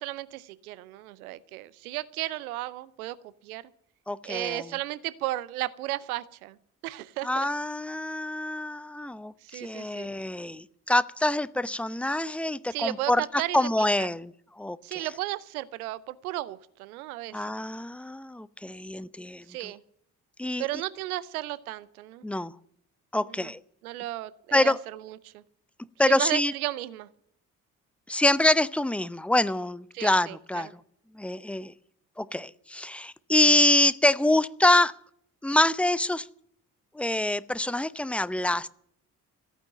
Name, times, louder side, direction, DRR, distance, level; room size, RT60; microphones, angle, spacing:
voice 1, 0.0-3.2 3.4-3.6 4.2-6.6 6.8-7.5 9.4-10.1 12.7-14.1 14.8-17.4 19.5-19.8 20.6-22.2 23.3-23.5 23.8-25.4 26.0-27.1 29.9-30.6, right 16 dB, 75° right, 19 dB, 0.7 m, -34 dB
voice 2, 4.1-4.6 7.2-13.2 13.5-14.3 14.6-14.8 17.3-19.4 20.4-20.6 22.2-22.5 23.1-23.6 24.5-24.8 26.0-26.5 28.1-30.7 31.2-31.7 32.2-34.9 35.4-36.3 37.0-38.7, left 1 dB, 5° left, 19 dB, 0.5 m, -25 dB
14.5 x 9.0 x 9.0 m, 0.68 s
figure-of-eight pair, 40°, 45 cm